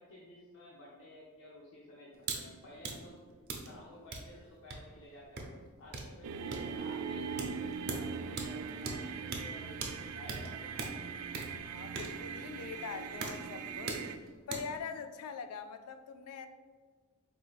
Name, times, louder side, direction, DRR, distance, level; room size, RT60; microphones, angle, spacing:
voice 1, 0.0-3.3 3.6-10.8, left 1 dB, 60° left, -5 dB, 0.7 m, -53 dB
sound 1, 2.2-2.4 2.7-14.8, right 3 dB, 50° right, 0.6 m, -42 dB
sound 2, 6.2-14.2, right 6 dB, 85° right, 0.3 m, -41 dB
voice 2, 11.7-14.0 14.5-16.5, left 6 dB, 85° left, 9 dB, 0.4 m, -43 dB
5.0 x 3.8 x 2.3 m, 1.5 s
head